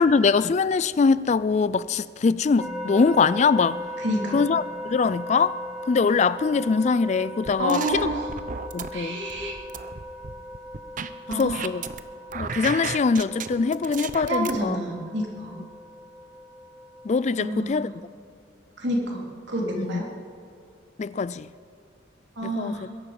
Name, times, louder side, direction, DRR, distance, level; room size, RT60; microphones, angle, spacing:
voice 1, 0.0-3.8 4.3-5.6 5.9-8.1 8.7-9.2 11.3-11.8 12.3-14.8 17.0-17.9 19.8-20.0 21.0-21.5 22.4-22.7, left 5 dB, 35° left, 0.3 m, -23 dB
sound 1, 2.6-17.6, equal, 5° right, 2.0 m, -39 dB
voice 2, 4.0-4.4 7.6-8.3 8.9-9.5 11.3-11.7 14.3-15.6 17.4-17.9 18.8-20.1 22.4-22.9, right 1 dB, 65° right, 3.6 m, -28 dB
sound 2, 7.5-8.9 9.3-12.0 12.3-14.6, right 5 dB, 45° right, 0.6 m, -34 dB
22.0 x 11.0 x 5.3 m
head